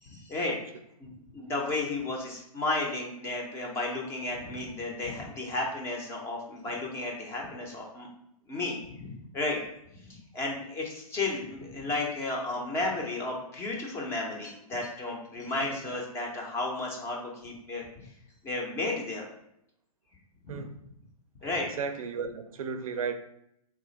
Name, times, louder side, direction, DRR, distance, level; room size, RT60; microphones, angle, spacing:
voice 1, 0.0-0.5 1.0-8.1 8.5-9.6 10.1-17.8 18.4-19.3 20.4-20.6 21.4-21.7, left 2 dB, 15° left, -1 dB, 0.4 m, -33 dB
voice 2, 15.3-16.0 20.5-20.7 21.4-23.2, right 5 dB, 65° right, 8 dB, 0.4 m, -36 dB
3.2 x 2.4 x 3.9 m, 0.78 s
hypercardioid pair, 140°, 19 cm